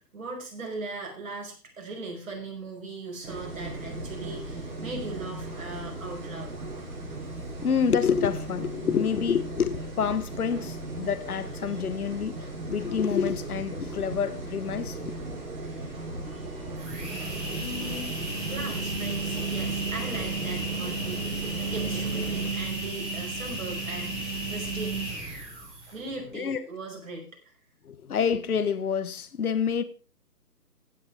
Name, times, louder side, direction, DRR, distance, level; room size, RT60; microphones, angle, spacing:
voice 1, 0.1-6.5 11.7-11.8 15.8-16.6 17.5-18.1 18.5-25.2 25.7-27.5, right 2 dB, 55° right, 5.6 m, -39 dB
sound 1, 3.2-22.5, right 2 dB, 35° right, 7.8 m, -37 dB
voice 2, 7.6-12.4 12.7-15.1 26.3-26.6 27.8-29.8, left 7 dB, 60° left, 1.2 m, -27 dB
sound 2, 16.8-26.1, right 3 dB, 15° right, 6.3 m, -33 dB
16.0 x 8.8 x 3.5 m
figure-of-eight pair, 155°, 49 cm